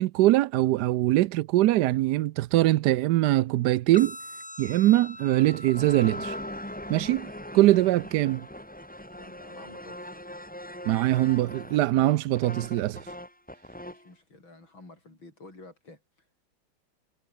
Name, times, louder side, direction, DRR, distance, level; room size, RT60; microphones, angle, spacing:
voice 1, 0.0-4.2 4.6-6.3 6.9-7.3 7.5-8.5 10.9-13.0, right 16 dB, 70° right, 1.0 m, -22 dB
sound 1, 3.9-11.9, left 1 dB, 25° left, 7.8 m, -45 dB
sound 2, 5.2-14.1, left 1 dB, 5° left, 2.0 m, -41 dB
voice 2, 9.2-10.2 13.9-16.3, left 2 dB, 75° left, 8.7 m, -50 dB
omnidirectional pair, 2.2 m